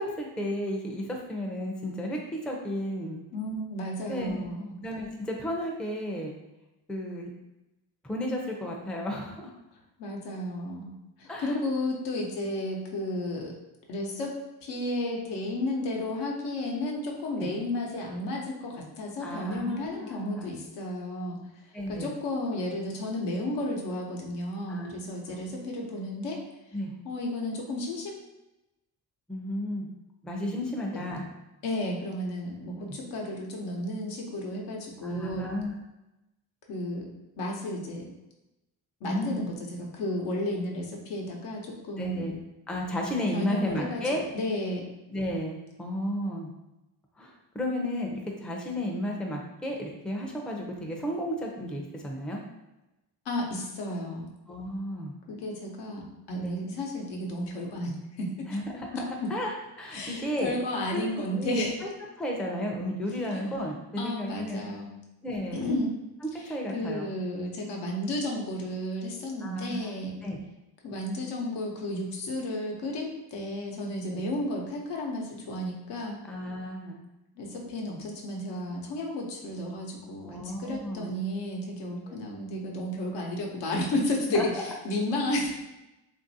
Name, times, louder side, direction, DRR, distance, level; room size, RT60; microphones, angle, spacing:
voice 1, 0.0-3.2 4.1-4.5 4.8-6.3 6.9-7.3 8.0-9.5 11.3-11.6 17.4-17.6 19.2-20.5 21.7-22.1 24.7-24.9 25.3-25.4 26.7-26.9 29.3-29.9 30.2-31.3 32.9-33.0 35.0-35.7 39.1-39.4 42.0-42.4 42.7-44.2 45.1-46.5 47.2-48.1 48.4-52.4 54.5-55.2 56.4-56.6 58.5-60.5 60.9-61.9 62.2-64.6 65.2-65.7 66.5-67.1 69.4-69.9 70.2-70.4 74.1-74.3 76.2-77.0 80.2-81.1 82.1-82.2 84.3-84.6, equal, ahead, 0 dB, 0.4 m, -33 dB
voice 2, 3.3-4.7 10.0-10.9 11.2-13.5 13.9-14.3 14.6-21.4 21.9-26.4 27.0-28.2 31.6-35.5 36.7-37.1 37.4-38.1 39.0-42.3 43.3-44.0 44.3-44.9 53.3-54.3 55.3-57.9 58.2-58.6 59.2-59.3 59.9-61.8 63.3-63.4 64.0-64.9 65.5-66.0 66.4-70.1 70.8-76.2 77.4-85.6, left 1 dB, 80° left, -1 dB, 0.8 m, -32 dB
3.1 x 2.6 x 2.7 m, 0.96 s
cardioid pair, 80°, 41 cm